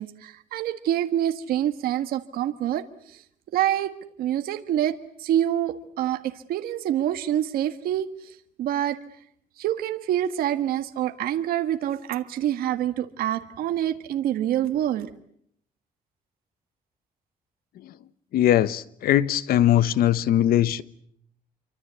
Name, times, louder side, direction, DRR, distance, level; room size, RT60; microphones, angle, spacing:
voice 1, 0.0-3.2 3.5-3.9 4.2-9.0 9.6-15.1, right 11 dB, 85° right, 1.6 m, -26 dB
voice 2, 18.3-20.8, left 12 dB, 80° left, 1.2 m, -21 dB
28.0 x 24.5 x 8.2 m
cardioid pair, 95°, 15 cm